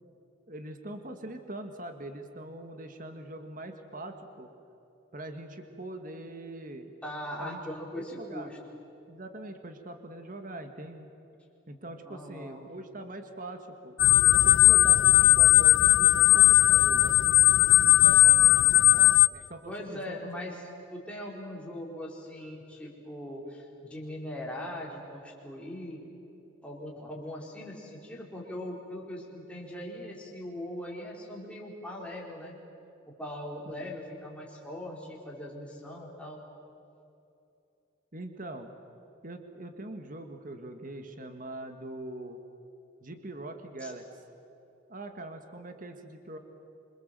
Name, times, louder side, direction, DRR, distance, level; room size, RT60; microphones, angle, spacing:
voice 1, 0.5-4.5 5.1-6.9 7.4-7.6 8.0-8.5 9.1-11.1 11.7-14.0 14.3-17.3 18.0-18.3 19.3-20.2 33.8-33.9 38.1-38.7 39.2-42.4 43.0-44.1 44.9-46.4, right 1 dB, 45° right, 6 dB, 1.8 m, -42 dB
voice 2, 7.0-8.6 12.0-12.6 18.0-19.1 19.7-20.6 20.9-26.0 26.6-32.6 33.1-36.5 43.8-43.9, left 1 dB, 5° left, -3 dB, 4.5 m, -40 dB
sound 1, 14.0-19.3, left 14 dB, 90° left, 0.7 m, -19 dB
26.5 x 26.0 x 7.7 m, 2.8 s
head